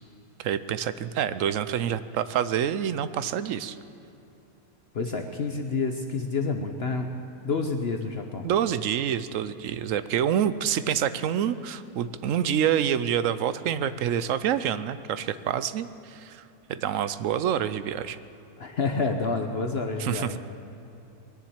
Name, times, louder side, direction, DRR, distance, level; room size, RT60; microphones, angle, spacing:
voice 1, 0.4-3.8 8.4-18.2 20.0-20.4, right 9 dB, 70° right, 13 dB, 0.8 m, -27 dB
voice 2, 4.9-7.1 7.4-8.5 18.6-20.4, left 4 dB, 50° left, 4 dB, 0.9 m, -28 dB
21.0 x 7.3 x 8.7 m, 3.0 s
omnidirectional pair, 1.6 m